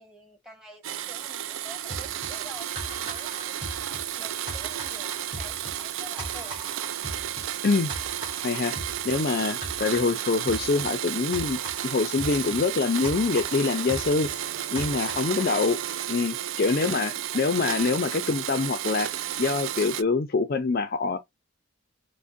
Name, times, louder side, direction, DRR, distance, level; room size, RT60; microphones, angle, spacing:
voice 1, 0.0-6.6 9.7-9.9 16.8-17.5, equal, 5° right, 1.1 m, -48 dB
Domestic sounds home sounds, 0.8-20.0, right 11 dB, 70° right, 0.4 m, -32 dB
sound 1, 1.9-15.6, right 1 dB, 25° right, 1.6 m, -40 dB
voice 2, 8.4-8.8 9.0-14.3 14.7-15.8 16.1-19.1 19.4-21.2, left 4 dB, 45° left, 0.4 m, -25 dB
Wind instrument woodwind instrument, 12.6-16.1, right 3 dB, 40° right, 2.3 m, -49 dB
5.0 x 2.1 x 2.5 m
head